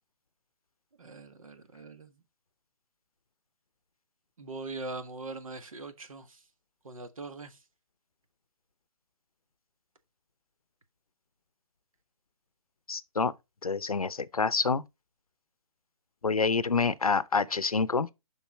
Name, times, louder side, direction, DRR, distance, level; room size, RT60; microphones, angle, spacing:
voice 1, 1.0-2.1 4.4-6.4 6.8-7.6, right 3 dB, 70° right, 1.6 m, -41 dB
voice 2, 12.9-13.3 13.6-14.8 16.2-18.1, left 4 dB, 85° left, 0.7 m, -27 dB
7.2 x 5.4 x 4.1 m
figure-of-eight pair, 140°, 18 cm